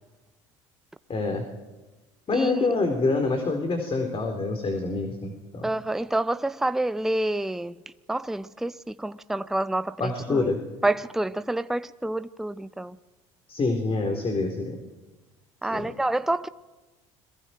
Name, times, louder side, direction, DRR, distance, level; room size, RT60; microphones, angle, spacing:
voice 1, 1.1-1.4 2.3-5.6 10.0-10.6 13.5-14.8 15.7-15.9, left 3 dB, 35° left, 4.1 m, -26 dB
voice 2, 2.3-2.7 5.6-7.8 8.1-10.5 10.8-13.0 15.6-16.5, right 1 dB, ahead, 0.6 m, -28 dB
29.5 x 22.5 x 4.6 m
hypercardioid pair, 75°, 16 cm